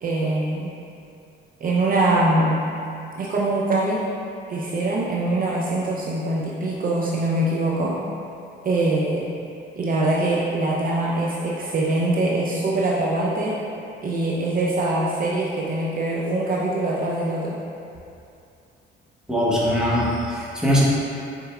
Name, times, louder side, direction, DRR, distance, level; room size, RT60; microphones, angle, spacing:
voice 1, 0.0-0.7 1.6-2.6 3.2-4.1 4.5-8.0 8.6-9.3 9.8-13.6 14.0-17.6, right 2 dB, 45° right, -4 dB, 0.6 m, -23 dB
voice 2, 19.3-20.8, equal, 5° right, -7 dB, 1.1 m, -21 dB
5.2 x 4.3 x 2.3 m, 2.6 s
cardioid pair, 90°, 20 cm